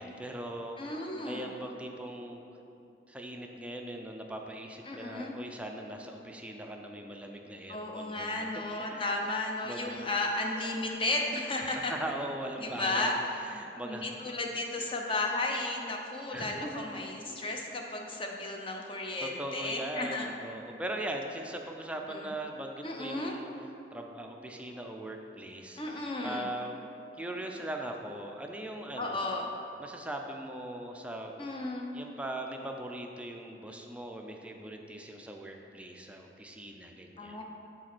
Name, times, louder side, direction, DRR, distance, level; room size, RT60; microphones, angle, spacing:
voice 1, 0.0-0.8 1.2-2.4 3.1-8.5 8.8-9.2 9.6-10.0 11.9-14.3 16.3-17.4 19.2-23.5 23.9-26.8 27.2-29.3 29.8-31.3 31.9-37.4, right 1 dB, 5° right, 2 dB, 0.4 m, -40 dB
voice 2, 0.8-1.5 4.9-5.4 7.7-11.9 12.6-13.2 13.8-20.3 20.7-20.8 22.1-22.3 22.8-23.3 25.8-26.5 29.0-29.5 31.4-31.9 37.2-37.4, left 2 dB, 30° left, 1 dB, 0.7 m, -34 dB
7.5 x 4.0 x 6.0 m, 2.8 s
head